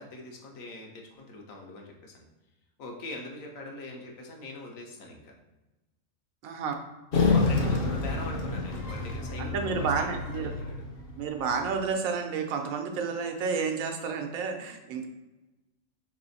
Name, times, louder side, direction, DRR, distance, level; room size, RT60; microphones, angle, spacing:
voice 1, 0.0-2.2 2.8-5.3 7.3-10.8, left 2 dB, 75° left, 0 dB, 1.2 m, -42 dB
voice 2, 6.4-6.7 9.4-10.5 11.2-15.1, right 5 dB, 90° right, 4 dB, 1.1 m, -30 dB
sound 1, 7.1-11.7, left 3 dB, 55° left, 0.7 m, -28 dB
3.4 x 3.1 x 4.0 m, 1.1 s
omnidirectional pair, 1.4 m